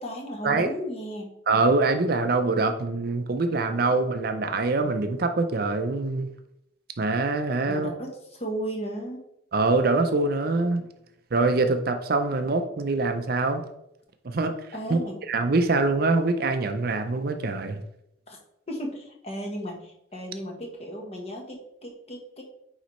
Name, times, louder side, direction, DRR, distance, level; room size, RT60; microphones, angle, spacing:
voice 1, 0.0-1.4 7.7-9.2 14.7-15.2 18.3-18.4 18.7-22.4, equal, 30° left, 1 dB, 1.1 m, -35 dB
voice 2, 1.5-6.3 7.0-7.9 9.5-10.9 11.3-13.6 14.2-14.5 14.9-15.0 15.3-17.8, right 3 dB, 50° right, 8 dB, 0.5 m, -24 dB
9.2 x 4.0 x 3.1 m, 0.79 s
head